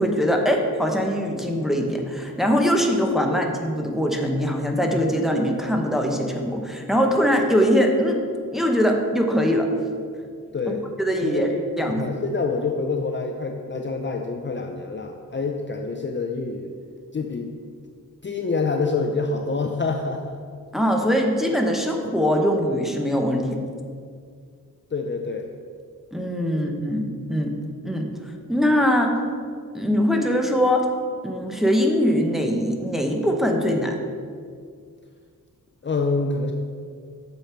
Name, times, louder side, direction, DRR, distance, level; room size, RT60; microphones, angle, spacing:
voice 1, 0.0-8.2 8.5-9.9 11.0-11.5 11.8-12.0 20.7-23.6 26.1-27.5 27.8-28.1 28.5-29.1 29.7-30.9 31.2-34.0, equal, ahead, 1 dB, 0.9 m, -22 dB
voice 2, 10.5-10.8 11.2-16.7 17.1-17.5 18.2-20.4 24.9-25.5 26.5-26.7 35.8-36.5, left 4 dB, 35° left, 2 dB, 0.5 m, -27 dB
8.2 x 6.5 x 4.4 m, 2.1 s
wide cardioid pair, 120°, 35 cm